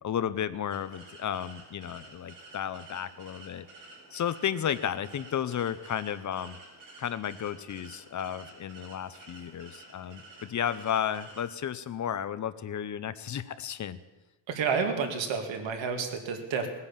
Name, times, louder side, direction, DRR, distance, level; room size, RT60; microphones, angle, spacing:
voice 1, 0.0-3.7 4.1-6.6 7.0-14.0, left 9 dB, 40° left, 14 dB, 0.6 m, -33 dB
sound 1, 0.7-11.4, right 2 dB, 45° right, 5.2 m, -51 dB
voice 2, 14.5-16.7, right 5 dB, 85° right, 5 dB, 2.3 m, -30 dB
19.0 x 9.8 x 7.3 m, 1.1 s
cardioid pair, 160°, 44 cm